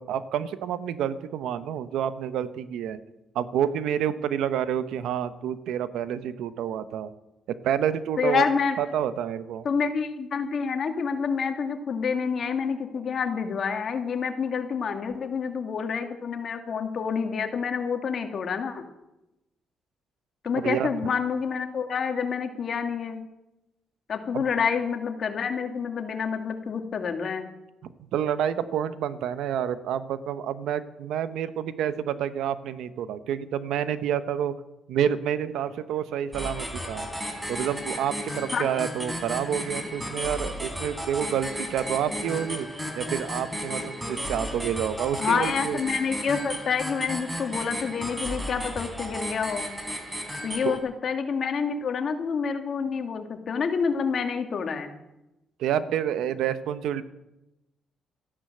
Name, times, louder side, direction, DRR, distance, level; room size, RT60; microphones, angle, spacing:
voice 1, 0.0-3.0 3.3-7.1 7.6-8.4 8.8-9.7 20.5-20.9 24.3-24.4 27.8-34.5 34.9-37.1 37.5-42.7 42.9-45.8 50.6-50.8 55.6-57.0, right 9 dB, 85° right, 13 dB, 1.0 m, -28 dB
voice 2, 8.2-8.7 9.6-18.8 20.4-23.2 24.1-27.4 38.5-38.7 45.2-49.7 50.4-54.9, left 6 dB, 55° left, 5 dB, 2.2 m, -28 dB
sound 1, 36.3-50.8, equal, 10° right, 3.6 m, -34 dB
14.0 x 11.5 x 7.9 m, 0.93 s
cardioid pair, 90°, 0 cm